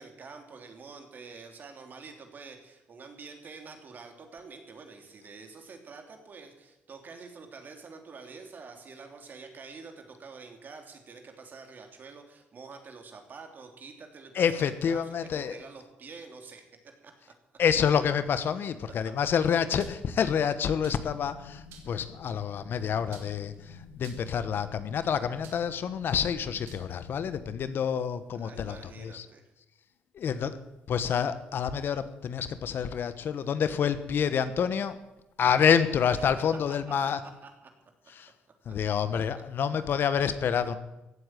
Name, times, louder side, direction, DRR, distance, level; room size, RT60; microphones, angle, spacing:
voice 1, 0.0-16.6 17.0-17.1 18.6-18.7 28.4-29.4 36.1-36.2 37.4-37.5, right 4 dB, 50° right, 5 dB, 3.1 m, -47 dB
voice 2, 14.3-15.6 17.6-29.3 30.1-30.6 30.9-35.0 35.4-37.2 38.2-38.3 38.6-40.8, left 7 dB, 60° left, 13 dB, 1.2 m, -28 dB
sound 1, 19.8-20.1 20.8-21.2 21.7-22.0 23.1-23.6 24.0-24.4 25.4-25.8 26.7-26.9, right 7 dB, 80° right, 2.6 m, -52 dB
sound 2, 20.6-27.6, left 5 dB, 90° left, 2.3 m, -50 dB
16.0 x 8.0 x 9.1 m, 0.96 s
supercardioid pair, 70°, 4 cm